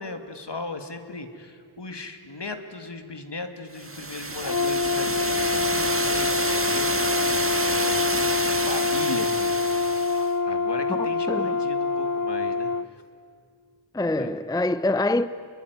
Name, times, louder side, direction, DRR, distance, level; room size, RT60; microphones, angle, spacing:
voice 1, 0.0-6.9 7.7-9.6 10.5-12.7 14.2-14.3, left 3 dB, 60° left, 2.3 m, -37 dB
sound 1, 3.8-10.3, right 2 dB, 30° right, 1.7 m, -28 dB
Brass instrument, 4.4-12.9, left 4 dB, 45° left, 0.8 m, -25 dB
voice 2, 10.9-11.6 13.9-15.3, left 2 dB, 10° left, 0.6 m, -25 dB
28.0 x 21.5 x 9.6 m
wide cardioid pair, 50°, 46 cm